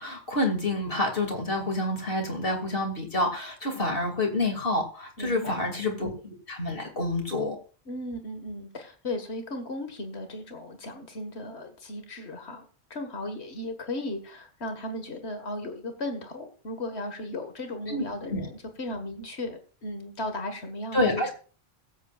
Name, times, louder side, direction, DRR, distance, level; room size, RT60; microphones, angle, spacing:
voice 1, 0.0-7.6 17.9-18.0 18.3-18.5 20.9-21.3, left 1 dB, 55° left, 2 dB, 2.9 m, -28 dB
voice 2, 5.2-5.7 7.9-12.7 12.9-21.3, left 1 dB, 75° left, 6 dB, 2.1 m, -36 dB
21.5 x 8.3 x 2.5 m, 0.37 s
omnidirectional pair, 1.1 m